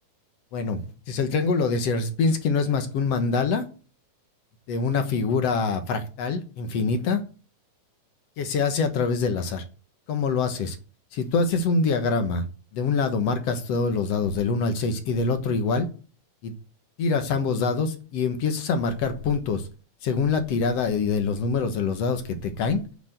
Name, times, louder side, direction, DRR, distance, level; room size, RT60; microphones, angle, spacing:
voice 1, 0.5-3.6 4.7-7.2 8.4-9.6 10.1-10.8 11.1-12.5 12.7-15.9 16.4-16.5 17.0-19.7 20.0-22.8, left 4 dB, 60° left, 7 dB, 2.1 m, -25 dB
8.0 x 6.8 x 8.1 m, 0.36 s
omnidirectional pair, 3.4 m